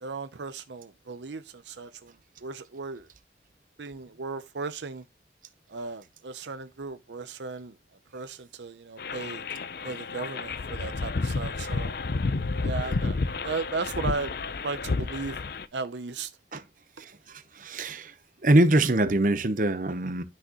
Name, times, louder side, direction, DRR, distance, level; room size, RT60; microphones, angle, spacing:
voice 1, 0.0-2.1 2.4-3.1 3.8-5.0 5.7-7.7 8.1-9.5 9.8-11.9 12.6-14.3 14.6-15.4 15.7-16.3, right 4 dB, 85° right, 0.7 m, -36 dB
sound 1, 9.0-15.6, left 3 dB, 55° left, 0.5 m, -31 dB
voice 2, 17.6-18.1 18.4-20.2, right 1 dB, 50° right, 0.9 m, -23 dB
10.5 x 6.4 x 3.0 m
head